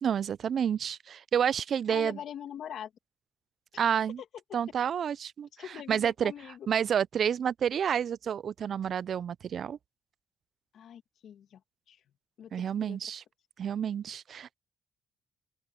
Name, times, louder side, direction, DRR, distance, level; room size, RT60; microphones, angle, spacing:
voice 1, 0.0-2.2 3.8-4.2 4.5-5.5 5.9-6.3 6.7-9.8 12.5-13.2 13.6-14.5, right 8 dB, 55° right, 0.4 m, -29 dB
voice 2, 1.9-2.9 3.7-3.8 5.5-6.7 10.7-11.6 11.9-12.0 12.4-13.1, left 9 dB, 70° left, 2.2 m, -43 dB
open air
cardioid pair, 90°, 0 cm